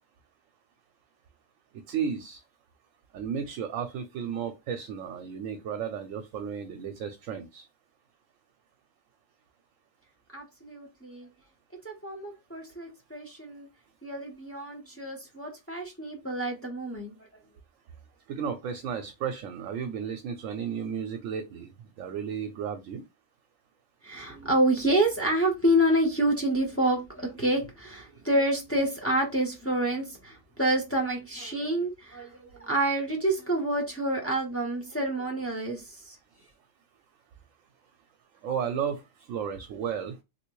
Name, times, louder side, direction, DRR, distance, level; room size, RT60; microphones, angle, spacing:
voice 1, 1.9-2.4 3.1-7.6 18.3-21.7 22.0-23.0 38.4-39.0 39.3-40.2, right 7 dB, 75° right, 0.9 m, -33 dB
voice 2, 10.3-11.3 11.8-13.7 14.0-17.1 24.0-36.2, right 1 dB, 15° left, 0.7 m, -28 dB
3.3 x 2.7 x 3.0 m
omnidirectional pair, 1.4 m